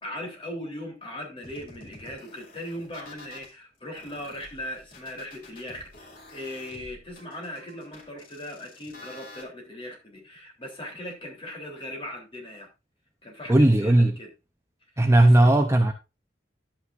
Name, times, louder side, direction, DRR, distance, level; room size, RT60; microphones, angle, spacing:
voice 1, 0.0-12.7 13.2-14.3 15.1-15.6, left 1 dB, 30° left, 3.3 m, -39 dB
sound 1, 1.4-3.5 3.9-9.4, left 2 dB, 50° left, 2.6 m, -49 dB
voice 2, 13.5-14.1 15.0-15.9, right 1 dB, 15° right, 0.6 m, -17 dB
11.0 x 8.8 x 2.5 m
head